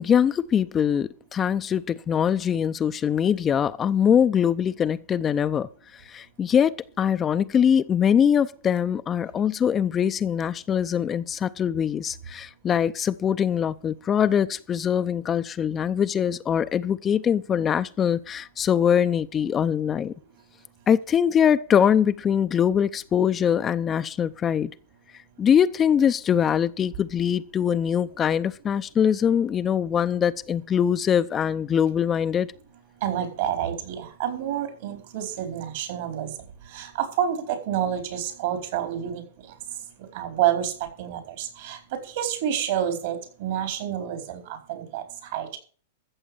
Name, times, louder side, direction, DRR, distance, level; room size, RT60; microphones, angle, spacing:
voice 1, 0.0-5.7 5.9-20.1 20.9-24.7 25.4-32.5, left 8 dB, 25° left, 0.6 m, -23 dB
voice 2, 33.0-36.3 36.7-39.2 40.1-40.7 41.0-41.8 42.2-44.4 44.7-45.0 45.3-45.6, right 10 dB, 65° right, 4.3 m, -28 dB
14.5 x 7.0 x 7.0 m
hypercardioid pair, 105°, 0 cm